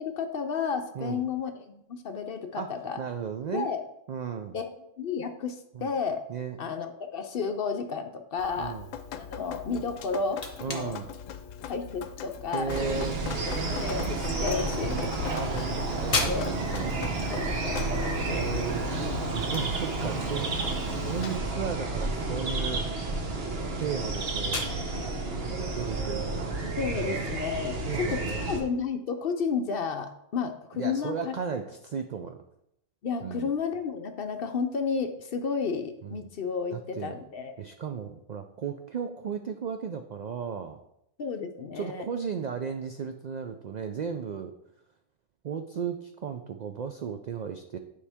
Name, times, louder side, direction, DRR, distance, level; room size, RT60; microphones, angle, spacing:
voice 1, 0.0-3.0 3.5-3.8 4.5-4.7 5.0-6.2 6.6-8.8 9.1-11.0 11.7-13.0 13.5-15.7 16.2-16.5 17.3-18.5 26.8-31.3 33.0-37.5 41.2-42.1, left 5 dB, 60° left, 7 dB, 0.7 m, -32 dB
voice 2, 3.0-3.7 4.1-4.6 5.7-5.9 6.3-6.6 8.6-8.9 10.6-11.1 12.5-13.2 14.8-17.5 18.3-22.9 23.7-24.7 25.6-26.5 27.0-27.2 27.9-28.5 30.7-32.4 33.2-33.5 36.0-36.3 36.7-37.2 37.6-40.8 41.7-44.5 45.4-47.8, right 7 dB, 80° right, 6 dB, 0.3 m, -35 dB
Drip, 8.4-21.4, left 8 dB, 85° left, 1.0 m, -41 dB
sound 1, 12.7-28.6, right 2 dB, 55° right, 1.2 m, -31 dB
sound 2, 22.2-27.4, left 3 dB, 35° left, 1.0 m, -40 dB
9.8 x 4.8 x 3.5 m, 0.79 s
omnidirectional pair, 1.3 m